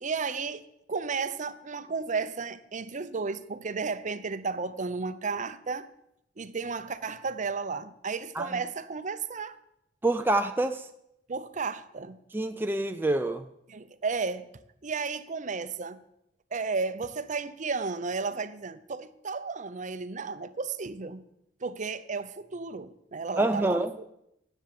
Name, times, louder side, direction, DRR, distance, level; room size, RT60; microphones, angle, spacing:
voice 1, 0.0-5.9 6.4-9.6 11.3-12.2 13.7-14.5 14.8-16.0 16.5-21.2 21.6-24.1, right 4 dB, 45° right, 0.7 m, -33 dB
voice 2, 10.0-10.9 12.3-13.5 23.4-23.9, right 2 dB, 10° right, 0.4 m, -26 dB
11.0 x 8.2 x 7.5 m
head